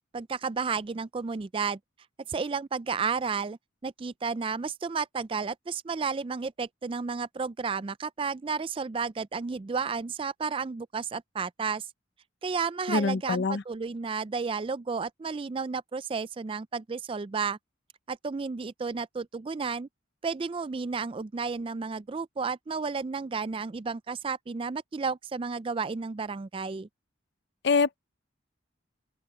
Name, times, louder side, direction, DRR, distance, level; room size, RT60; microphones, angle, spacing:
voice 1, 0.1-1.8 2.3-11.9 12.4-17.6 18.1-19.9 20.2-26.9, right 5 dB, 25° right, 0.3 m, -32 dB
voice 2, 12.9-13.6 27.6-28.0, left 4 dB, 55° left, 0.6 m, -25 dB
open air
head